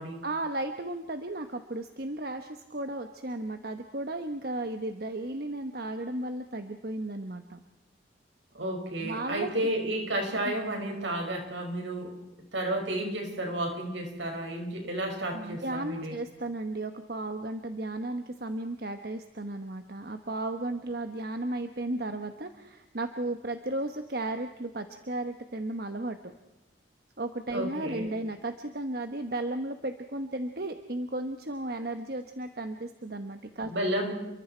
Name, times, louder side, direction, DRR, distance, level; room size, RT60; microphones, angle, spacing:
voice 1, 0.2-7.6 9.0-9.5 10.4-10.5 15.3-26.3 27.2-33.7, right 2 dB, 55° right, 7 dB, 1.1 m, -34 dB
voice 2, 8.5-12.1 12.5-16.2 27.5-28.1 33.7-34.1, right 1 dB, 75° right, 3 dB, 5.7 m, -32 dB
29.5 x 23.5 x 4.5 m, 1.0 s
head